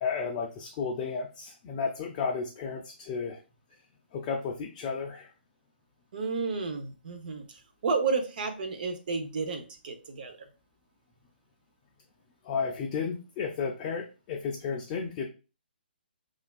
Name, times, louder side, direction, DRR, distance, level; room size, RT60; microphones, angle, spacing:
voice 1, 0.0-3.4 4.1-5.3 12.4-15.3, left 5 dB, 25° left, -1 dB, 0.4 m, -33 dB
voice 2, 6.1-10.4, right 4 dB, 55° right, 6 dB, 0.7 m, -32 dB
3.4 x 2.4 x 2.3 m, 0.32 s
hypercardioid pair, 145°, 6 cm